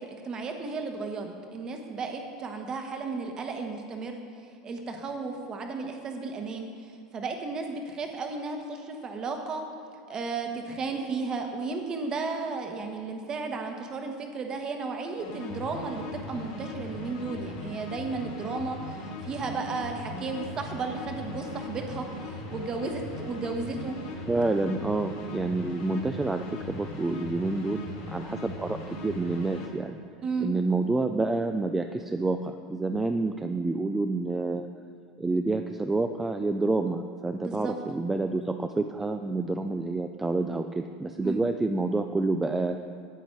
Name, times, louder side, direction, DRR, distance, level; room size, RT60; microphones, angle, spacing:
voice 1, 0.0-4.2 4.6-6.7 7.1-9.6 10.1-19.0 19.2-24.0 30.2-30.5 37.4-37.7 41.2-41.4, right 4 dB, 35° right, 4 dB, 1.2 m, -34 dB
sound 1, 15.2-29.7, left 2 dB, 65° left, 2.5 m, -39 dB
voice 2, 24.3-30.0 30.4-34.7 35.2-42.8, right 3 dB, 10° right, 6 dB, 0.4 m, -28 dB
9.1 x 8.2 x 4.6 m, 2.3 s
supercardioid pair, 115°, 2 cm